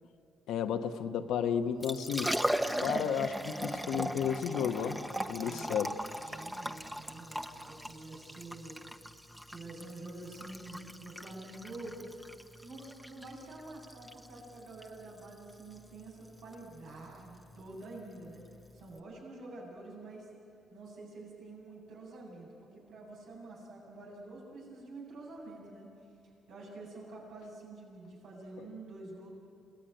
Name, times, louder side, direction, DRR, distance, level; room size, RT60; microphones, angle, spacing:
voice 1, 0.5-2.3 2.8-5.0 5.3-5.9, left 8 dB, 85° left, 6 dB, 1.3 m, -32 dB
Liquid, 1.6-19.0, equal, 5° right, 1.1 m, -39 dB
voice 2, 5.4-5.8 6.3-8.8 9.5-12.2 12.6-18.4 18.7-20.3 20.7-25.9 26.5-29.3, right 2 dB, 80° right, -3 dB, 7.9 m, -47 dB
27.5 x 19.5 x 9.2 m, 2.5 s
cardioid pair, 90°, 0 cm